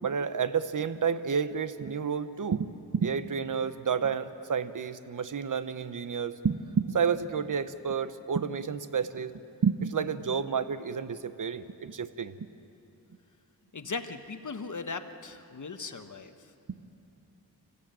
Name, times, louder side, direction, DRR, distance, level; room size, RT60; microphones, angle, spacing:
voice 1, 0.0-12.5 16.7-16.8, right 6 dB, 50° right, 13 dB, 0.9 m, -30 dB
voice 2, 13.7-16.5, left 4 dB, 45° left, 8 dB, 1.3 m, -38 dB
25.5 x 15.5 x 9.0 m, 2.9 s
cardioid pair, 70°, 40 cm